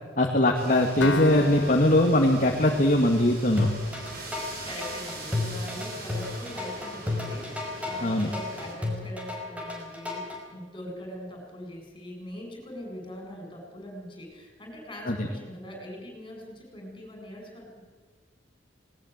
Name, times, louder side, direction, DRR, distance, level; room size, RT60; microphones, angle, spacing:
voice 1, 0.2-3.7 8.0-8.3 15.1-15.3, left 1 dB, 45° left, 1 dB, 2.1 m, -21 dB
sound 1, 0.5-8.8, right 2 dB, 55° right, 6.1 m, -42 dB
Acoustic guitar, 1.0-4.9, left 4 dB, 75° left, 1.1 m, -36 dB
sound 2, 3.6-10.4, left 2 dB, 5° right, 5.2 m, -32 dB
voice 2, 4.6-17.8, equal, 25° left, 2 dB, 7.7 m, -42 dB
19.5 x 19.5 x 8.1 m, 1.4 s
head